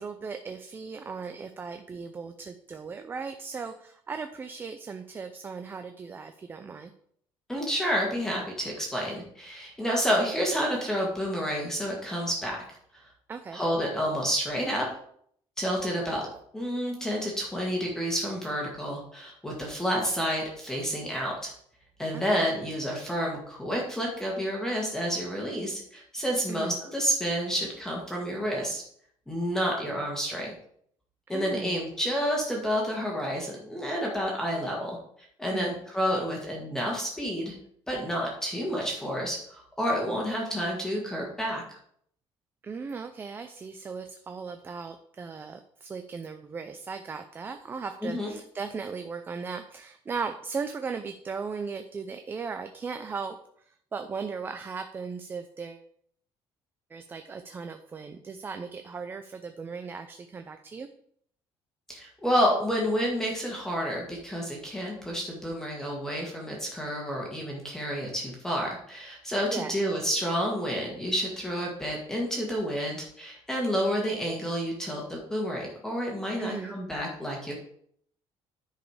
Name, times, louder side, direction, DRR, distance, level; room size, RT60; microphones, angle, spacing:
voice 1, 0.0-6.9 13.3-13.6 22.1-22.5 26.5-26.8 31.3-31.8 35.5-35.8 42.6-53.4 53.7-55.8 56.9-60.9 69.5-69.8 76.4-76.7, right 5 dB, 20° right, 7 dB, 0.5 m, -37 dB
voice 2, 7.5-12.6 13.5-14.9 15.6-16.3 16.5-21.5 22.0-28.8 29.3-30.5 31.3-35.0 35.4-37.5 37.9-41.8 48.0-48.3 61.9-77.5, equal, 5° left, -2 dB, 1.7 m, -29 dB
10.0 x 5.1 x 4.9 m, 0.65 s
cardioid pair, 155°, 10 cm